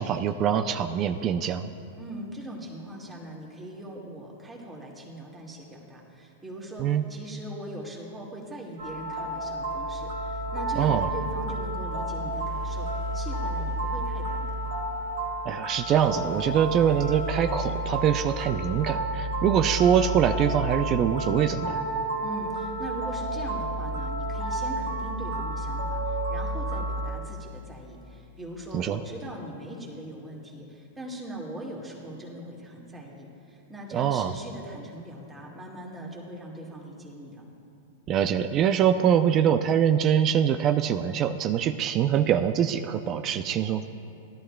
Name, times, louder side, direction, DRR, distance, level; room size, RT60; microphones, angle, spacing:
voice 1, 0.0-1.7 6.8-7.0 10.8-11.1 15.5-21.8 28.7-29.0 33.9-34.3 38.1-43.9, right 9 dB, 35° right, 9 dB, 0.4 m, -24 dB
voice 2, 2.0-14.6 22.2-37.4, right 1 dB, 10° right, -3 dB, 1.9 m, -40 dB
sound 1, 8.8-27.1, right 1 dB, 70° right, 1.7 m, -31 dB
16.5 x 11.5 x 2.2 m, 2.6 s
hypercardioid pair, 120°, 0 cm